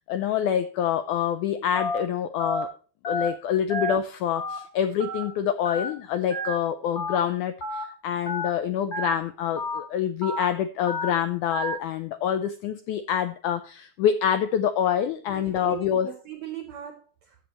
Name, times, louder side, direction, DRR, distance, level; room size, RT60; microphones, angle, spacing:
voice 1, 0.1-2.7 3.1-16.1, left 9 dB, 85° left, 1.7 m, -26 dB
Telephone, 1.7-2.0 2.4-2.6 3.0-3.3 3.7-3.9 4.3-4.6 5.0-5.2 5.7-5.9 6.3-6.5 7.0-7.2 7.6-7.8 8.3-8.5 8.9-9.1 9.6-9.8 10.2-10.4 10.9-11.1 11.5-11.7, left 1 dB, 35° left, 1.6 m, -30 dB
voice 2, 15.3-17.4, right 11 dB, 80° right, 1.6 m, -39 dB
14.5 x 7.6 x 3.0 m
omnidirectional pair, 4.2 m